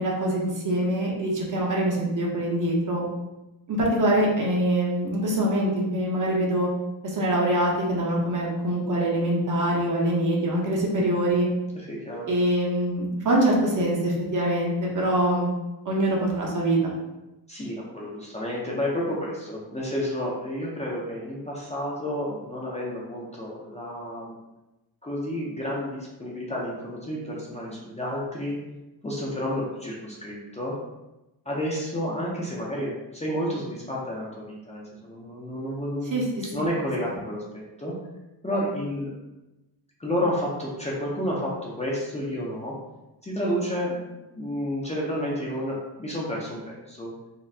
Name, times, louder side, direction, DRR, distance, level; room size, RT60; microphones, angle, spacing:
voice 1, 0.0-3.0 3.7-6.7 7.0-11.5 12.3-15.5 15.8-16.8 36.1-36.2, right 1 dB, 45° right, -3 dB, 0.9 m, -24 dB
voice 2, 11.7-12.3 17.5-24.4 25.0-28.6 29.0-30.7 31.5-37.9 38.4-39.1 40.0-42.7 43.2-44.0 44.4-47.1, equal, 15° left, -5 dB, 0.5 m, -30 dB
4.1 x 2.2 x 2.7 m, 1.0 s
cardioid pair, 105°, 45 cm